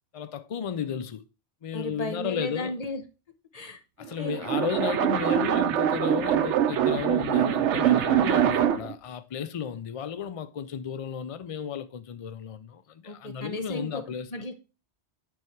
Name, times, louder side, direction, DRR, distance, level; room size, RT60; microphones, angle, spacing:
voice 1, 0.1-1.2 1.6-2.8 4.0-14.3, left 7 dB, 65° left, 0.3 m, -33 dB
voice 2, 1.7-3.0 3.5-3.8 4.2-4.4 13.0-14.0 14.3-14.6, left 1 dB, 35° left, 1.1 m, -35 dB
sound 1, 4.1-9.0, right 10 dB, 85° right, 0.9 m, -24 dB
9.3 x 3.5 x 4.4 m
omnidirectional pair, 1.2 m